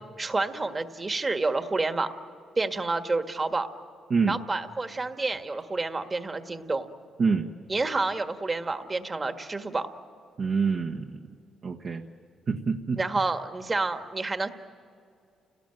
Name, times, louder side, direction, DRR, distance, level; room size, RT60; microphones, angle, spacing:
voice 1, 0.2-2.1 2.6-3.7 4.3-6.9 7.7-9.9 13.0-14.5, right 3 dB, 25° right, 7 dB, 1.7 m, -29 dB
voice 2, 10.4-11.2 11.6-12.0 12.5-13.0, right 5 dB, 50° right, 2 dB, 1.3 m, -26 dB
30.0 x 18.5 x 9.1 m, 2.4 s
cardioid pair, 90°, 0 cm